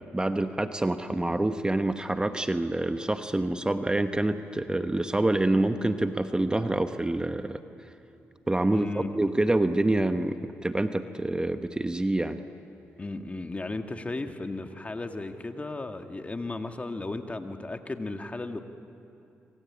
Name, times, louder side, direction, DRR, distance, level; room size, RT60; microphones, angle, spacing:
voice 1, 0.0-7.6 8.5-8.9 9.1-12.4, right 2 dB, 15° right, 8 dB, 1.1 m, -26 dB
voice 2, 8.7-9.3 13.0-18.6, left 2 dB, 25° left, 6 dB, 1.9 m, -35 dB
26.0 x 25.5 x 8.7 m, 2.7 s
supercardioid pair, 60°, 5 cm